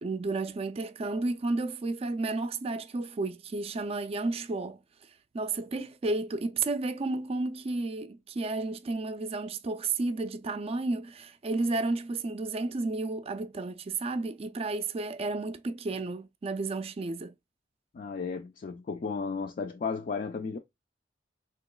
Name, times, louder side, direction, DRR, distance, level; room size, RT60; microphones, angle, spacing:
voice 1, 0.0-4.8 5.3-17.3, right 3 dB, 35° right, 0.4 m, -32 dB
voice 2, 17.9-20.6, left 5 dB, 50° left, 0.3 m, -34 dB
3.8 x 2.9 x 2.2 m
head